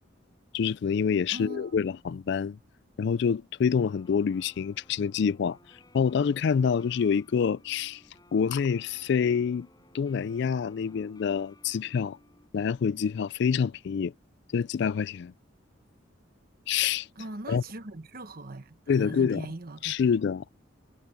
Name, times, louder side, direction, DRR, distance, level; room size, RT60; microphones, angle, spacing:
voice 1, 0.5-2.6 3.0-5.6 5.9-8.0 8.3-9.7 9.9-12.2 12.5-14.1 14.5-15.3 16.7-17.1 17.5-17.6 18.9-19.5 19.8-20.5, left 6 dB, 60° left, 0.3 m, -26 dB
voice 2, 1.3-1.9 17.2-19.9, right 2 dB, 50° right, 1.2 m, -40 dB
Guitar, 3.8-12.5, left 1 dB, 20° left, 5.4 m, -59 dB
head